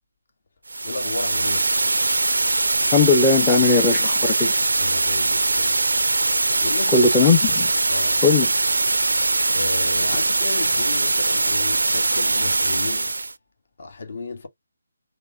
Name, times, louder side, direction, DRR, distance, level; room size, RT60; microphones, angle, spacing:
sound 1, 0.7-13.3, right 2 dB, 70° right, 0.4 m, -21 dB
voice 1, 0.8-1.7 4.8-5.8 6.6-7.1 7.9-8.2 9.5-13.3 13.8-14.5, left 3 dB, 55° left, 1.3 m, -33 dB
voice 2, 2.9-4.5 6.9-7.7 8.2-8.5, left 4 dB, 15° left, 0.6 m, -18 dB
5.1 x 2.0 x 2.5 m
figure-of-eight pair, 145°, 0 cm